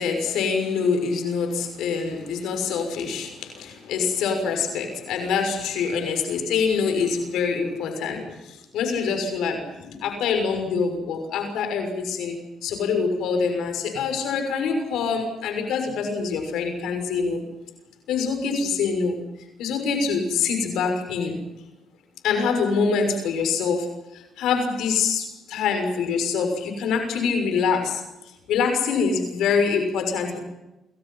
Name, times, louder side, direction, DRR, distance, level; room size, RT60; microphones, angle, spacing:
voice 1, 0.0-17.4 18.1-19.2 19.6-21.4 22.2-23.9 24.1-28.0 28.5-30.4, left 5 dB, 85° left, 5 dB, 6.5 m, -25 dB
29.5 x 24.0 x 5.8 m, 1.0 s
cardioid pair, 90°, 0 cm